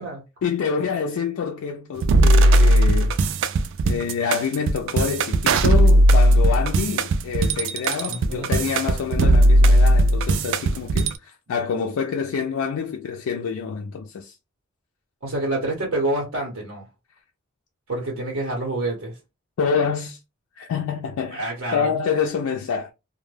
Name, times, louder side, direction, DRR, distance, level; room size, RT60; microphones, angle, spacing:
voice 1, 0.4-3.1 3.8-14.4 19.6-20.2 20.6-21.4 21.7-22.9, left 6 dB, 90° left, 0.4 m, -27 dB
sound 1, 2.0-11.1, right 1 dB, 60° right, 0.3 m, -17 dB
voice 2, 8.0-8.5 15.2-16.8 17.9-19.1 21.3-21.9, right 2 dB, 80° right, 1.0 m, -27 dB
2.1 x 2.1 x 3.2 m
head